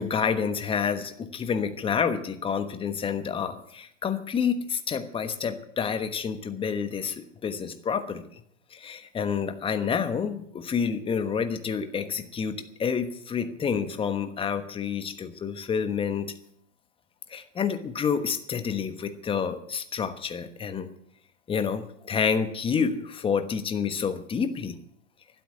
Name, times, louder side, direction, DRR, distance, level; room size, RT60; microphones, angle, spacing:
voice 1, 0.0-8.3 8.7-16.3 17.3-20.9 21.5-24.8, left 6 dB, 15° left, 9 dB, 1.2 m, -29 dB
12.5 x 9.1 x 9.6 m, 0.69 s
hypercardioid pair, 125°, 37 cm